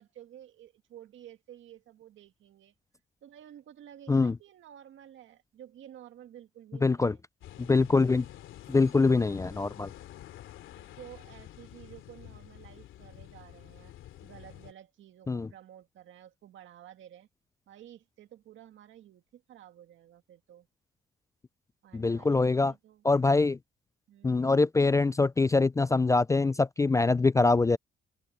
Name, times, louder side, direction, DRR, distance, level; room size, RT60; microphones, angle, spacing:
voice 1, 0.0-2.7 3.2-7.2 10.7-13.9 14.2-17.3 17.7-20.7 21.8-23.0 24.1-24.5, right 11 dB, 75° right, 2.0 m, -52 dB
voice 2, 6.8-7.1 7.6-8.3 8.7-9.9 15.3-15.5 21.9-22.7 23.0-23.6 24.2-27.8, left 3 dB, 15° left, 0.3 m, -24 dB
sound 1, 7.4-14.7, left 13 dB, 85° left, 2.8 m, -49 dB
cardioid pair, 90°, 20 cm